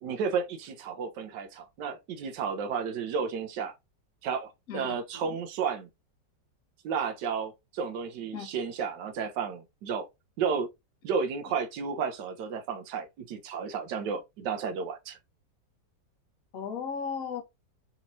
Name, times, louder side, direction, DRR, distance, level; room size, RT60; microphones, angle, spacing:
voice 1, 0.0-3.7 4.2-5.9 6.8-10.1 10.4-10.7 11.0-15.2, right 6 dB, 75° right, 1.3 m, -32 dB
voice 2, 4.7-5.4 8.3-8.5 16.5-17.4, left 6 dB, 60° left, 1.1 m, -36 dB
4.2 x 2.9 x 2.5 m
omnidirectional pair, 1.9 m